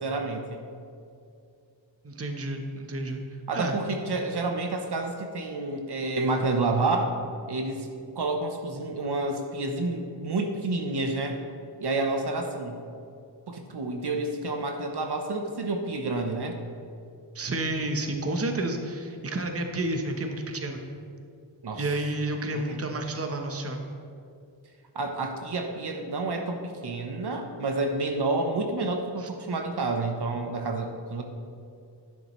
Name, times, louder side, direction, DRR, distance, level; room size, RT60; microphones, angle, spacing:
voice 1, 0.0-0.6 3.5-7.2 7.5-7.9 8.1-11.4 11.8-12.8 13.5-16.6 21.6-21.8 22.5-22.8 24.9-31.2, right 2 dB, 60° right, 4 dB, 0.9 m, -29 dB
voice 2, 2.0-3.2 3.5-3.8 17.3-20.8 21.7-23.8 29.2-29.3, right 2 dB, 30° right, 4 dB, 0.9 m, -30 dB
11.5 x 9.7 x 3.1 m, 2.4 s
wide cardioid pair, 105°, 44 cm